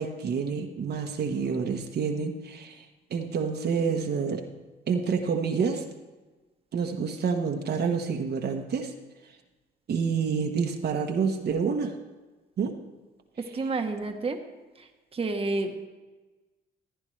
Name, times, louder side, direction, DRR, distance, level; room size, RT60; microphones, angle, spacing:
voice 1, 0.0-4.4 4.9-5.8 6.7-8.9 9.9-12.0 12.6-12.8, right 5 dB, 55° right, 3 dB, 1.0 m, -28 dB
voice 2, 13.5-14.4 14.8-15.7, right 3 dB, 30° right, 4 dB, 1.1 m, -30 dB
15.0 x 9.7 x 3.2 m, 1.2 s
cardioid pair, 90°, 20 cm